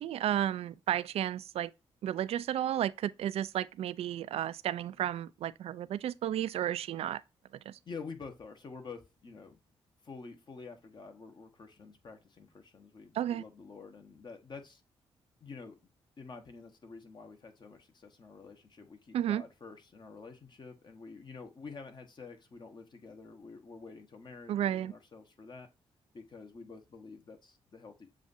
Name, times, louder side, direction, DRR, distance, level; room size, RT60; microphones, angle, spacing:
voice 1, 0.0-1.7 2.0-7.2 7.7-7.8 13.1-13.4 19.1-19.4 24.5-24.9, right 11 dB, 70° right, 0.4 m, -32 dB
voice 2, 7.8-9.6 10.0-14.8 15.4-15.8 16.2-25.7 26.1-28.1, left 4 dB, 45° left, 1.2 m, -48 dB
7.3 x 2.5 x 2.6 m
cardioid pair, 70°, 11 cm